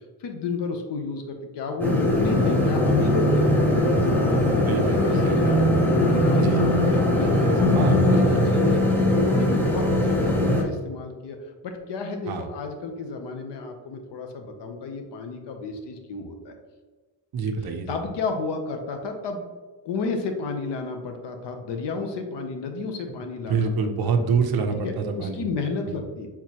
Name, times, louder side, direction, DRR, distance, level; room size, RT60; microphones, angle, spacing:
voice 1, 0.2-3.5 4.2-11.4 11.6-16.5 17.9-19.5 19.8-24.1 24.7-26.3, left 4 dB, 70° left, 5 dB, 0.8 m, -31 dB
sound 1, 1.8-10.6, left 1 dB, 5° left, 0.5 m, -20 dB
voice 2, 4.7-5.6 6.4-6.6 7.8-8.4 12.3-12.4 17.3-17.9 23.5-25.4, right 5 dB, 55° right, 6 dB, 0.6 m, -26 dB
4.5 x 3.7 x 2.8 m, 1.3 s
wide cardioid pair, 180°, 44 cm